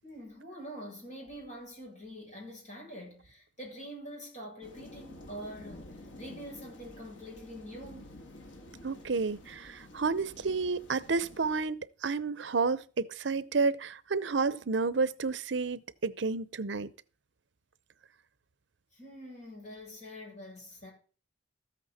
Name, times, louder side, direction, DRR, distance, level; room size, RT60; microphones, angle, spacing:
voice 1, 0.0-5.9 6.2-8.2 18.9-20.9, equal, 40° left, 7.6 m, -45 dB
sound 1, 4.6-11.7, left 1 dB, 80° left, 1.8 m, -50 dB
voice 2, 8.8-16.9, right 4 dB, 70° right, 0.7 m, -31 dB
14.0 x 8.6 x 4.2 m
head